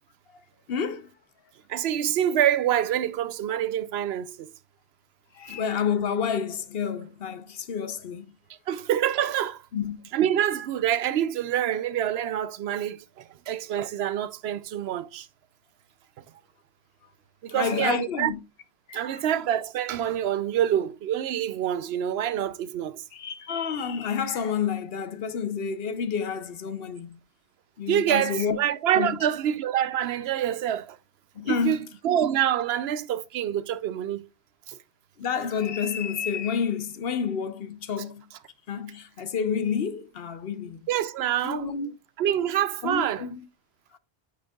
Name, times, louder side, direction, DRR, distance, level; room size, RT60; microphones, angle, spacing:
voice 1, 0.3-1.1 5.3-8.3 9.7-10.0 17.5-18.4 18.9-19.2 23.1-27.2 27.8-28.6 29.0-29.2 31.3-31.8 35.2-38.2 38.7-40.8 41.4-41.9 42.8-43.4, left 6 dB, 65° left, 1.0 m, -29 dB
voice 2, 1.7-4.5 8.7-9.6 10.1-15.3 17.4-18.3 18.9-23.0 27.9-31.0 31.4-31.8 32.0-34.3 34.7-34.8 40.9-41.7 42.2-43.2, right 10 dB, 80° right, 0.8 m, -26 dB
8.5 x 6.3 x 2.3 m
omnidirectional pair, 1.1 m